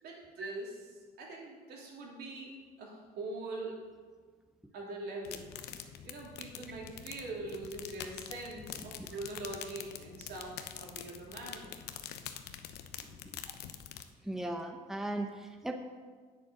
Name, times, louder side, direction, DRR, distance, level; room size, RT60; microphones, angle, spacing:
voice 1, 0.0-0.8 1.2-2.5 2.8-3.8 4.7-5.5 6.0-11.7, right 2 dB, 70° right, -2 dB, 3.3 m, -43 dB
sound 1, 5.2-14.0, left 10 dB, 75° left, 0.8 m, -46 dB
voice 2, 14.2-15.7, right 1 dB, 5° right, 4 dB, 0.8 m, -37 dB
9.0 x 8.5 x 6.3 m, 1.5 s
cardioid pair, 110°, 17 cm